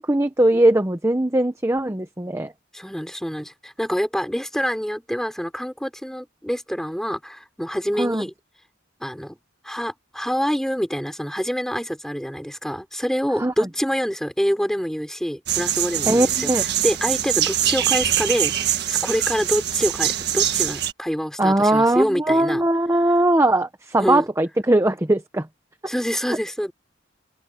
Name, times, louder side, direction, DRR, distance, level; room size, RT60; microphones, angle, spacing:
voice 1, 0.0-2.5 8.0-8.2 13.4-13.5 16.1-16.6 21.4-25.5, right 1 dB, 15° right, 0.9 m, -20 dB
voice 2, 2.7-8.3 9.0-9.4 9.6-22.6 24.0-24.2 25.9-26.7, equal, ahead, 4.9 m, -26 dB
sound 1, 15.5-20.9, right 11 dB, 55° right, 1.7 m, -23 dB
open air
head